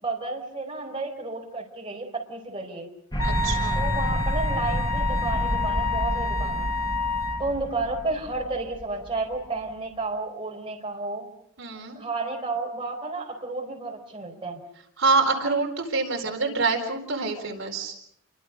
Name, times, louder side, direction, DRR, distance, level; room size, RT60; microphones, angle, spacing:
voice 1, 0.0-2.9 3.8-6.7 7.4-11.3 11.9-14.6, right 3 dB, 25° right, 0 dB, 4.7 m, -32 dB
sound 1, 3.1-9.6, equal, 20° left, 1.8 m, -29 dB
Wind instrument woodwind instrument, 3.2-7.4, left 3 dB, 65° left, 3.5 m, -29 dB
voice 2, 3.2-3.8 11.6-12.0 15.0-17.9, right 4 dB, 60° right, 2 dB, 4.4 m, -26 dB
29.5 x 24.5 x 5.4 m, 0.70 s
head